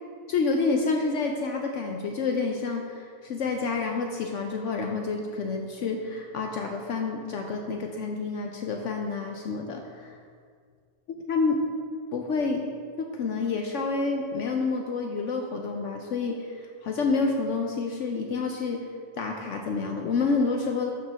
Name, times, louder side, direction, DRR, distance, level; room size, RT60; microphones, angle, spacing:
voice 1, 0.3-10.2 11.3-11.6 12.1-12.7 13.0-18.8 19.2-20.9, left 4 dB, 65° left, 2 dB, 0.9 m, -28 dB
12.5 x 5.1 x 3.5 m, 2.1 s
omnidirectional pair, 1.5 m